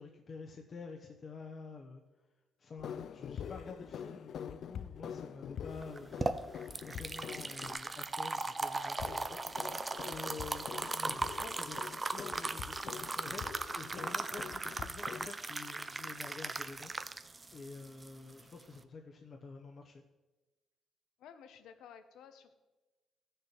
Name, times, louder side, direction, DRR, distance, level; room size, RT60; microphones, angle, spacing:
voice 1, 0.0-2.0 2.6-10.7 10.9-11.8 12.1-17.2 17.5-20.0, left 4 dB, 45° left, 1 dB, 0.9 m, -49 dB
sound 1, 2.8-7.8 9.0-15.3, left 8 dB, 65° left, 0.4 m, -45 dB
sound 2, 5.8-18.8, right 3 dB, 25° right, 0.7 m, -38 dB
voice 2, 21.2-22.5, left 7 dB, 85° left, 9 dB, 0.9 m, -54 dB
14.5 x 6.7 x 4.5 m, 1.2 s
cardioid pair, 90°, 0 cm